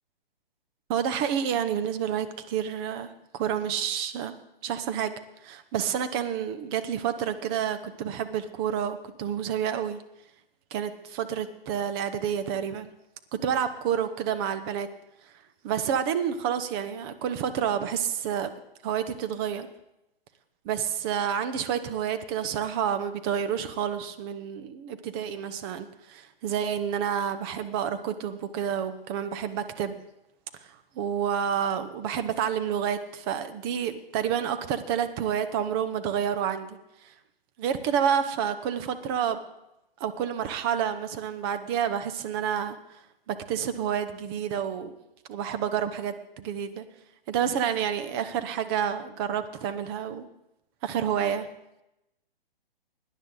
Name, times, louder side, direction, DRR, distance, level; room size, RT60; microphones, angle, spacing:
voice 1, 0.9-4.4 4.6-5.1 5.4-10.0 10.7-12.9 13.3-14.9 15.2-15.3 15.6-18.5 18.8-19.7 20.6-30.0 30.6-37.1 37.6-39.4 40.0-43.0 43.3-44.9 45.3-46.8 47.3-50.3 50.8-51.5, right 8 dB, 25° right, 9 dB, 0.8 m, -29 dB
17.5 x 10.0 x 3.8 m, 0.88 s
figure-of-eight pair, 130°, 29 cm